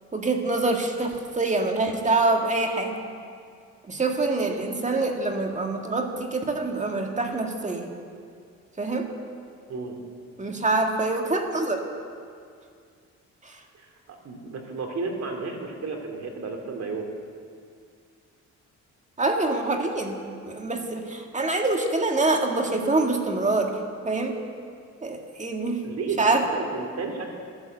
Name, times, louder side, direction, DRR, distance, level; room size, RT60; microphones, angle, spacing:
voice 1, 0.1-3.0 3.9-7.9 8.8-9.1 10.4-11.8 13.4-13.6 19.2-23.8 24.1-24.4 25.0-25.8 26.2-26.4, right 2 dB, 25° right, 3 dB, 2.0 m, -25 dB
voice 2, 13.7-17.1 25.8-27.3, right 4 dB, 60° right, 2 dB, 2.8 m, -33 dB
13.5 x 11.5 x 8.0 m, 2.3 s
cardioid pair, 90°, 30 cm